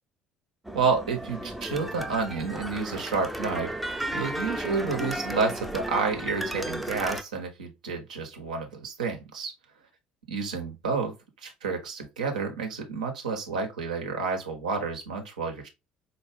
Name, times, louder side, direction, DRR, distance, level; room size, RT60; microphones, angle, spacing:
sound 1, 0.7-7.2, right 1 dB, ahead, 0.5 m, -34 dB
voice 1, 0.7-3.7 4.1-9.5 10.3-11.2 11.4-15.7, right 4 dB, 75° right, 0.8 m, -30 dB
4.4 x 2.2 x 3.2 m
figure-of-eight pair, 55°, 4 cm